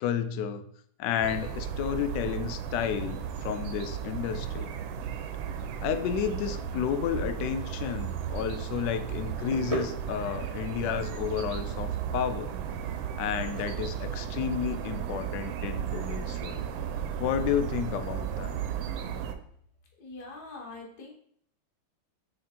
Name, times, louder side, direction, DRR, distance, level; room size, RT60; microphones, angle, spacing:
voice 1, 0.0-0.6 1.0-4.7 5.8-12.5 13.2-16.6 17.2-18.5, left 8 dB, 75° left, 9 dB, 1.1 m, -31 dB
sound 1, 1.2-19.3, right 8 dB, 85° right, 1.4 m, -35 dB
sound 2, 9.5-16.1, right 3 dB, 40° right, 0.5 m, -42 dB
voice 2, 20.0-21.1, left 3 dB, 55° left, -2 dB, 1.8 m, -43 dB
6.7 x 3.4 x 4.3 m, 0.64 s
omnidirectional pair, 2.1 m